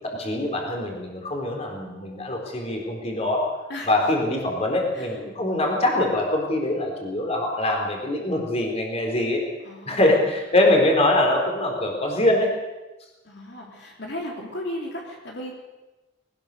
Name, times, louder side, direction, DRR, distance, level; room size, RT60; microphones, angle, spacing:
voice 1, 0.0-3.5 3.9-9.4 9.9-12.5, left 1 dB, 35° left, 1 dB, 4.2 m, -23 dB
voice 2, 9.6-10.3 13.2-15.5, left 1 dB, 60° left, -1 dB, 3.6 m, -35 dB
21.0 x 19.0 x 6.8 m, 1.1 s
head